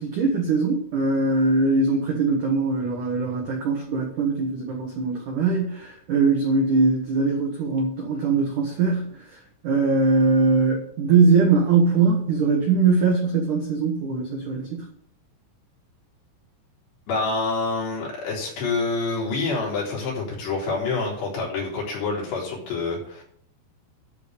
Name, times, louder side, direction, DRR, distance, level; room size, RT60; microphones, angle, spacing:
voice 1, 0.0-14.9, right 4 dB, 75° right, 0 dB, 1.8 m, -21 dB
voice 2, 17.1-23.2, left 3 dB, 55° left, -4 dB, 5.6 m, -27 dB
11.0 x 5.4 x 8.2 m, 0.63 s
omnidirectional pair, 6.0 m